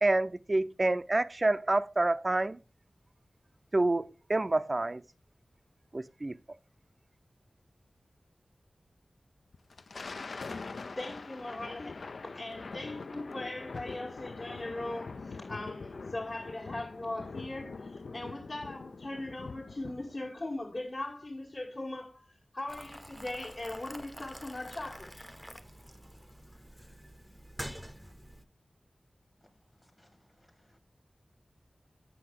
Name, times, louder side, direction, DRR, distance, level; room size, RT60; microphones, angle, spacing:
voice 1, 0.0-2.6 3.7-5.0 5.9-6.4, right 2 dB, 40° right, 0.4 m, -28 dB
Thunder, 9.5-20.3, left 4 dB, 80° left, 0.4 m, -43 dB
voice 2, 11.0-22.2 22.5-25.3, left 2 dB, 55° left, 1.5 m, -40 dB
Boiling, 22.7-28.4, equal, ahead, 0.6 m, -47 dB
voice 3, 29.4-30.8, left 1 dB, 20° left, 1.1 m, -67 dB
7.9 x 5.9 x 3.6 m
wide cardioid pair, 60°, 0 cm